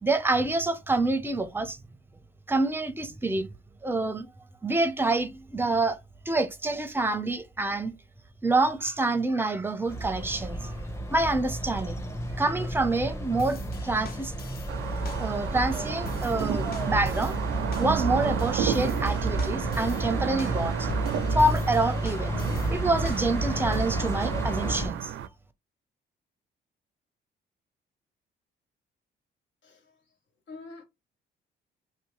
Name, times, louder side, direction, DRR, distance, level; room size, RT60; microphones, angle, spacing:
voice 1, 0.0-1.8 2.5-3.5 3.8-4.3 4.6-6.0 6.3-7.9 8.4-10.8 11.1-12.0 12.4-14.3 15.2-17.4 17.8-20.9 21.3-25.1, right 2 dB, 10° right, 0.6 m, -27 dB
sound 1, 9.9-24.9, right 1 dB, 15° left, 0.9 m, -31 dB
sound 2, 13.4-24.1, left 6 dB, 50° left, 0.8 m, -45 dB
sound 3, 14.7-25.3, right 9 dB, 75° right, 0.5 m, -32 dB
voice 2, 29.6-30.0 30.5-30.8, left 3 dB, 65° left, 1.5 m, -45 dB
2.8 x 2.6 x 3.0 m
cardioid pair, 90°, 20 cm